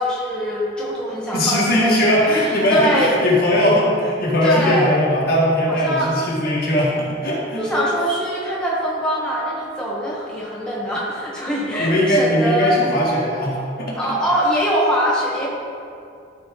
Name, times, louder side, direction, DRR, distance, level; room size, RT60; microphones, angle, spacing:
voice 1, 0.0-2.0 2.4-3.1 4.4-4.9 5.8-6.1 7.6-12.7 14.0-15.5, equal, 5° left, -7 dB, 1.3 m, -22 dB
voice 2, 1.3-7.6 11.8-14.1, left 1 dB, 55° left, -5 dB, 1.8 m, -19 dB
13.0 x 4.7 x 3.8 m, 2.4 s
head